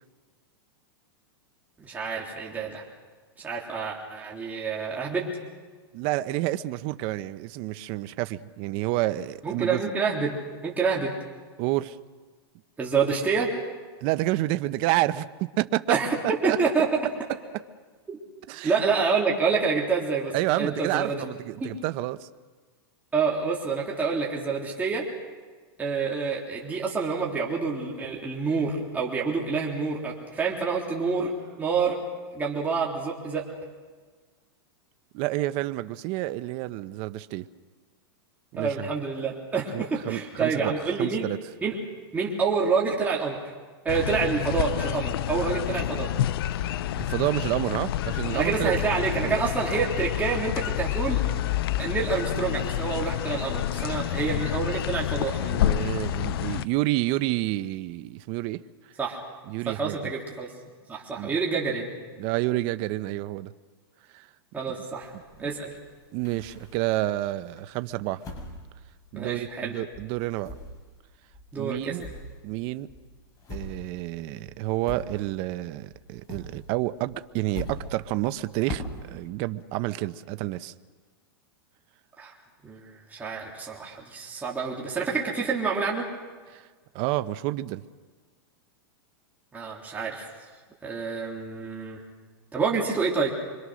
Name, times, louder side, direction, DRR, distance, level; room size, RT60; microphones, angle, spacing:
voice 1, 1.8-2.8 3.4-5.3 9.4-11.1 12.8-13.5 15.9-16.2 16.4-16.9 18.6-21.2 21.6-21.8 23.1-25.0 25.8-31.3 31.6-32.0 32.3-33.4 38.6-41.3 41.6-41.7 42.1-43.4 43.9-46.1 48.3-51.2 51.8-55.7 59.0-59.2 59.7-60.5 60.9-61.9 64.5-65.1 65.4-65.7 69.1-69.7 71.5-72.0 82.2-82.3 82.6-86.1 89.5-90.3 90.8-92.0 92.5-93.3, right 5 dB, 10° right, -3 dB, 3.6 m, -27 dB
voice 2, 5.9-9.8 11.6-12.0 14.0-16.0 16.4-16.6 17.5-17.6 18.5-18.7 20.3-22.3 35.1-37.5 38.5-38.9 39.7-41.4 46.5-48.8 49.2-49.4 55.5-58.6 59.5-60.0 61.2-61.3 62.2-63.5 64.1-64.3 64.7-64.8 65.4-65.5 66.1-68.2 69.1-70.5 71.6-72.1 72.4-72.9 73.5-80.7 86.5-86.7 86.9-87.8, right 16 dB, 40° right, 12 dB, 1.0 m, -29 dB
sound 1, 43.9-56.6, left 12 dB, 65° left, 0.7 m, -28 dB
sound 2, 65.0-67.1 67.6-69.7 69.9-75.6 75.9-79.3, left 1 dB, 25° left, 7.0 m, -42 dB
26.0 x 25.5 x 6.4 m, 1.5 s
supercardioid pair, 145°, 13 cm